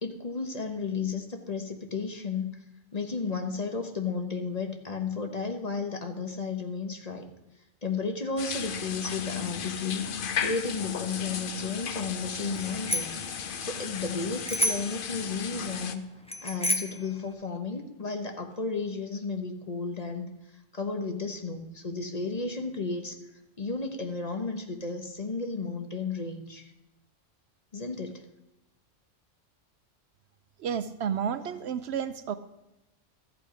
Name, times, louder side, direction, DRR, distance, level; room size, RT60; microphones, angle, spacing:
voice 1, 0.0-2.6 2.9-7.3 7.8-10.1 10.4-13.2 13.6-16.1 16.4-20.3 20.7-23.2 23.6-26.7 27.7-28.2, left 4 dB, 35° left, 4 dB, 1.1 m, -33 dB
sound 1, 8.4-15.9, left 7 dB, 55° left, 0.8 m, -35 dB
Bicycle bell, 12.6-13.3 14.5-15.0 16.3-17.0, left 1 dB, 5° left, 0.6 m, -29 dB
voice 2, 30.6-32.4, right 8 dB, 65° right, 12 dB, 0.8 m, -31 dB
13.0 x 8.2 x 5.0 m, 0.94 s
omnidirectional pair, 1.2 m